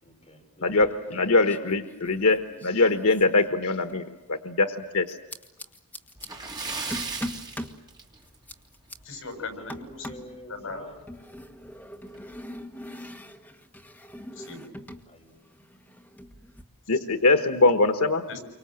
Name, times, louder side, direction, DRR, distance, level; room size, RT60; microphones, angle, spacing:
voice 1, 0.0-1.9 6.3-7.0 7.3-7.4 9.3-11.0 15.1-15.6, left 1 dB, 25° left, 0 dB, 6.3 m, -46 dB
voice 2, 0.6-5.2 16.9-18.2, left 3 dB, 80° left, 7 dB, 1.3 m, -22 dB
sound 1, 0.6-1.2 1.5-4.1 5.1-6.3 6.9-7.8 8.2-9.0 9.7-10.3 11.1-15.1 15.3-16.6, left 1 dB, 5° left, 1.7 m, -41 dB
Splash splatter, 6.2-8.5 8.8-9.0 9.5-9.6 11.0-11.1 11.4-11.5 12.1-12.4, right 4 dB, 20° right, 2.7 m, -35 dB
voice 3, 9.0-10.2 10.5-10.8 14.3-14.7 16.9-17.0 18.3-18.4, left 4 dB, 65° left, 5 dB, 6.8 m, -39 dB
29.5 x 25.0 x 7.7 m, 1.1 s
head